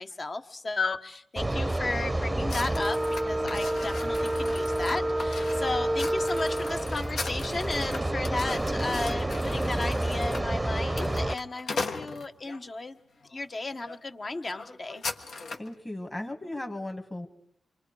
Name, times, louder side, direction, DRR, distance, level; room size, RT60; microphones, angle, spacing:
voice 1, 0.0-13.0 13.3-15.0, left 3 dB, 40° left, 7 dB, 1.3 m, -34 dB
sound 1, 1.4-11.3, right 1 dB, 15° right, 0.7 m, -29 dB
sound 2, 2.5-12.6 13.2-13.5 13.8-14.0 14.2-15.7, left 3 dB, 75° left, 1.6 m, -39 dB
voice 2, 15.6-17.3, left 1 dB, 25° left, 3 dB, 2.0 m, -36 dB
27.5 x 24.0 x 4.8 m, 0.72 s
cardioid pair, 60°, 0 cm